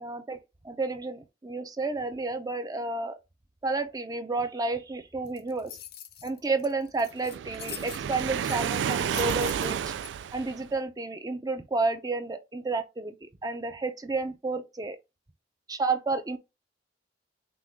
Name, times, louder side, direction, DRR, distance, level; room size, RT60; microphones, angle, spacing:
voice 1, 0.0-3.2 3.6-5.7 6.2-9.9 10.3-15.0 15.7-16.4, right 3 dB, 20° right, 0.5 m, -31 dB
sound 1, 5.3-10.1, left 10 dB, 55° left, 0.7 m, -44 dB
Waves surf, 7.3-10.8, right 8 dB, 70° right, 0.3 m, -31 dB
6.1 x 2.3 x 3.5 m
head